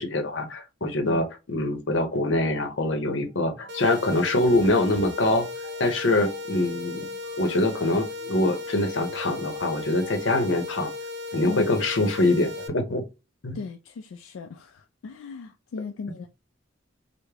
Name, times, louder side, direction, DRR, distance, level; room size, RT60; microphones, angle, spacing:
voice 1, 0.0-5.5 5.8-7.1 7.4-10.9 11.3-13.0 13.4-13.6, left 2 dB, 65° left, 0.8 m, -24 dB
sound 1, 2.7-10.6, right 1 dB, 15° left, 2.1 m, -49 dB
sound 2, 3.7-12.7, left 3 dB, 60° right, 0.6 m, -36 dB
voice 2, 13.5-16.3, left 5 dB, 85° left, 0.3 m, -37 dB
3.4 x 2.1 x 3.3 m
head